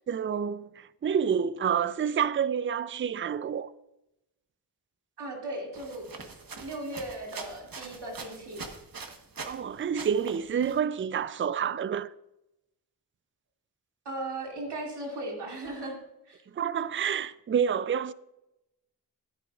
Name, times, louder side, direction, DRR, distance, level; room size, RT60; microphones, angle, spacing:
voice 1, 0.1-3.7 9.4-12.1 16.5-18.1, right 7 dB, 30° right, 0.4 m, -28 dB
voice 2, 5.2-8.7 14.0-16.0 16.3-16.4, right 1 dB, 90° right, 2.4 m, -37 dB
sound 1, 5.7-9.6 9.9-10.8, right 4 dB, 60° right, 1.2 m, -43 dB
12.5 x 9.9 x 2.4 m
cardioid pair, 50°, 40 cm